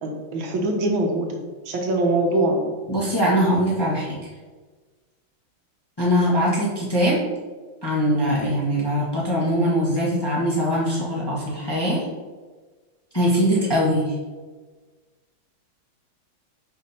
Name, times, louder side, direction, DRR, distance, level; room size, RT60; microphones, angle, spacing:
voice 1, 0.0-2.7, right 1 dB, 70° right, 1 dB, 1.6 m, -23 dB
voice 2, 2.9-4.2 6.0-7.2 7.8-12.0 13.1-14.1, equal, 15° left, -6 dB, 1.2 m, -21 dB
5.2 x 5.1 x 4.2 m, 1.3 s
omnidirectional pair, 2.3 m